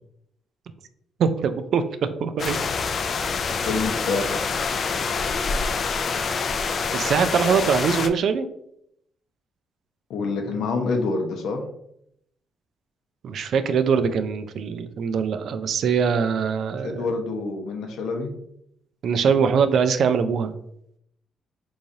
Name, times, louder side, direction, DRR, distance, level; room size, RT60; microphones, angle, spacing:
voice 1, 1.2-2.6 3.5-3.6 6.9-8.5 13.2-17.1 19.0-20.5, right 6 dB, 65° right, 10 dB, 0.3 m, -22 dB
sound 1, 2.4-8.1, left 5 dB, 50° left, 0.3 m, -26 dB
voice 2, 3.6-4.5 10.1-11.7 16.8-18.3, left 3 dB, 80° left, 4 dB, 0.7 m, -27 dB
3.6 x 3.2 x 2.6 m, 0.74 s
cardioid pair, 90°, 0 cm